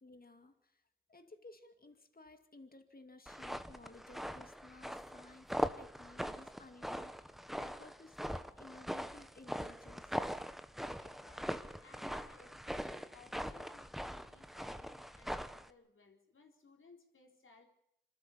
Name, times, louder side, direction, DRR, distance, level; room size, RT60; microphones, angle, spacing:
voice 1, 0.0-0.8 1.1-10.1, left 2 dB, 45° left, 7 dB, 2.4 m, -57 dB
sound 1, 3.3-15.7, equal, ahead, 1.2 m, -41 dB
voice 2, 11.0-17.6, left 4 dB, 80° left, 2 dB, 3.9 m, -62 dB
26.5 x 13.0 x 8.5 m, 0.77 s
cardioid pair, 45°, 20 cm